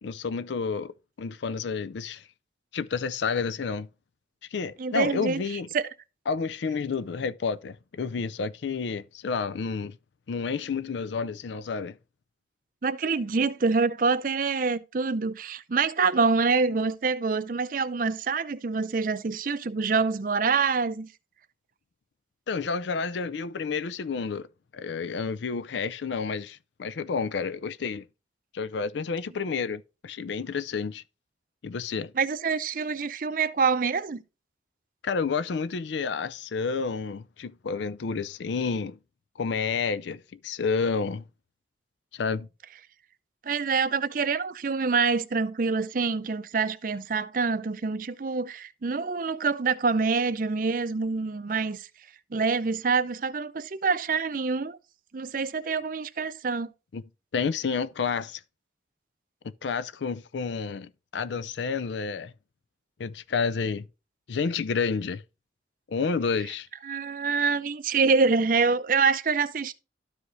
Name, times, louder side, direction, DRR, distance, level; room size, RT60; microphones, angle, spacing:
voice 1, 0.0-2.2 2.7-3.9 4.5-5.7 6.3-10.0 10.3-12.0 22.5-24.5 24.7-28.1 28.5-31.0 31.6-32.1 35.0-39.0 39.4-41.2 42.1-42.5 56.9-57.0 57.3-58.4 59.6-62.3 63.0-63.9 64.3-65.2 65.9-66.7, left 5 dB, 75° left, 0.4 m, -30 dB
voice 2, 4.8-5.4 5.7-5.9 12.8-21.1 32.2-34.2 43.4-51.9 52.3-54.8 55.1-56.7 66.8-69.7, right 4 dB, 45° right, 0.5 m, -26 dB
12.5 x 4.9 x 2.6 m
head